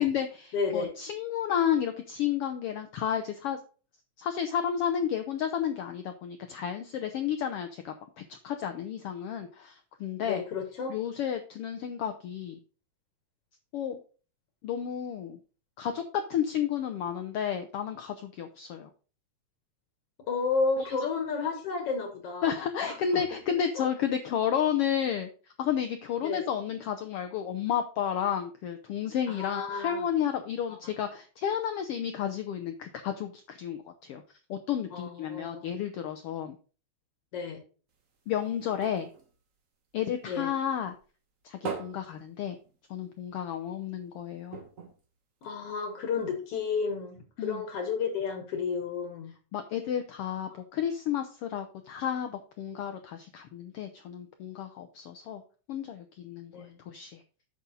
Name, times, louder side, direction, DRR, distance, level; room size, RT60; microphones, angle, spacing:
voice 1, 0.0-3.6 4.2-10.4 10.9-12.6 13.7-14.0 14.6-15.4 15.8-18.9 20.8-21.0 22.4-25.3 25.6-34.2 34.5-36.6 38.3-39.1 39.9-40.9 41.4-42.6 42.9-44.6 47.4-47.6 49.5-55.4 55.7-57.2, left 9 dB, 75° left, 6 dB, 1.4 m, -32 dB
voice 2, 0.5-0.9 10.2-10.9 20.3-22.6 22.8-23.2 23.8-23.9 26.2-26.5 29.3-30.0 30.7-30.9 34.9-35.7 37.3-37.6 40.2-40.5 45.4-49.3 56.5-56.8, left 5 dB, 60° left, 5 dB, 2.1 m, -32 dB
sound 1, 37.9-40.5 40.9-43.2 43.5-43.6 43.9-44.0 44.5-46.0 46.6-46.7, right 5 dB, 65° right, 0.7 m, -43 dB
8.4 x 6.2 x 3.9 m, 0.37 s
omnidirectional pair, 3.4 m